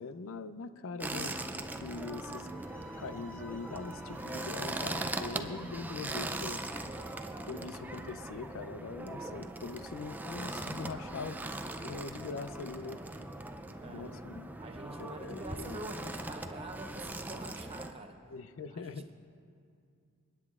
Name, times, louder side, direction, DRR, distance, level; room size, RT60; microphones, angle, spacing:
voice 1, 0.0-1.4 1.8-2.5 3.0-6.6 7.5-11.4 11.8-13.0 13.8-14.5 15.0-16.1 18.3-19.1, left 4 dB, 65° left, 12 dB, 0.5 m, -42 dB
sound 1, 1.0-17.9, right 1 dB, 10° right, 0.4 m, -40 dB
sound 2, 2.2-7.2, right 1 dB, 5° left, 1.4 m, -54 dB
voice 2, 13.8-14.1 14.6-18.2 18.7-19.1, right 2 dB, 25° right, 4 dB, 0.9 m, -45 dB
29.0 x 9.8 x 2.4 m, 2.4 s
head